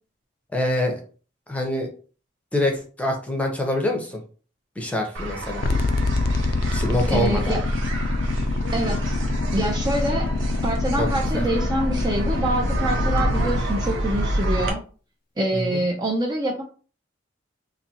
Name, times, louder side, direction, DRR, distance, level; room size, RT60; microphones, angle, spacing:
voice 1, 0.5-1.0 1.5-1.9 2.5-4.2 4.8-5.6 6.7-7.5 11.0-11.1 11.3-11.5 15.5-15.8, left 1 dB, 5° left, 2 dB, 0.7 m, -25 dB
sound 1, 5.1-14.7, right 1 dB, 85° right, 0.8 m, -29 dB
sound 2, 5.6-13.6, left 2 dB, 50° left, 0.4 m, -25 dB
voice 2, 7.1-7.6 8.7-9.2 9.5-10.3 10.6-14.8 15.4-16.6, right 1 dB, 20° right, 1 dB, 0.4 m, -25 dB
4.0 x 2.6 x 2.8 m, 0.39 s
head